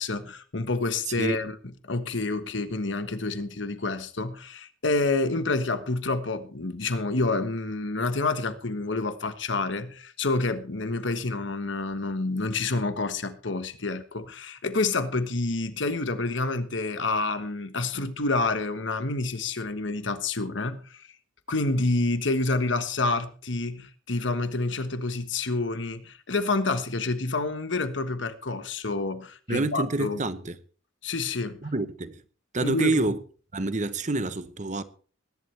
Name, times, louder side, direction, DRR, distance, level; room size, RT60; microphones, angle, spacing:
voice 1, 0.0-1.6 1.9-21.0 21.5-30.2 31.0-31.6 32.6-33.0, left 3 dB, 70° left, 1.4 m, -28 dB
voice 2, 29.5-30.6 31.6-32.2 32.5-33.2 33.5-34.8, right 2 dB, 40° right, 1.0 m, -27 dB
21.0 x 11.0 x 3.4 m
head